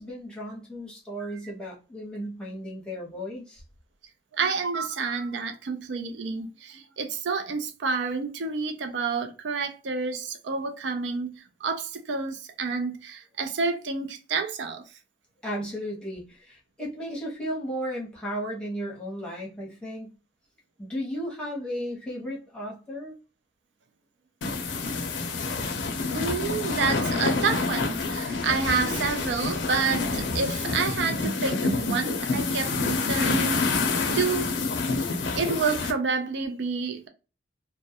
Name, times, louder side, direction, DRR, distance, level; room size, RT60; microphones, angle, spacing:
voice 1, 0.0-3.6 15.4-20.1 20.8-23.2, equal, 5° left, 0.8 m, -35 dB
voice 2, 4.3-14.8 26.1-34.5 35.4-37.1, right 4 dB, 75° right, 0.4 m, -29 dB
sound 1, 24.4-35.9, left 3 dB, 80° left, 0.5 m, -27 dB
2.2 x 2.1 x 2.7 m
head